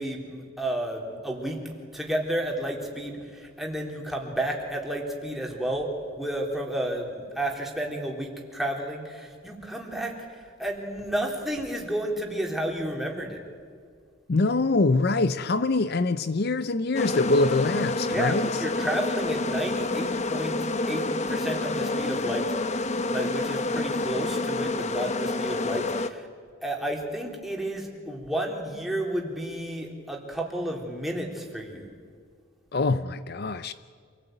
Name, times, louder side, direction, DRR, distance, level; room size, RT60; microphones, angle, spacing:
voice 1, 0.0-5.9 6.2-13.4 18.1-20.6 20.9-22.5 23.1-26.3 26.6-31.9, right 1 dB, ahead, 3.5 m, -31 dB
voice 2, 14.3-18.6 32.7-33.7, left 3 dB, 50° left, 0.6 m, -24 dB
sound 1, 16.9-26.1, left 2 dB, 35° left, 1.0 m, -28 dB
27.5 x 18.5 x 9.2 m
head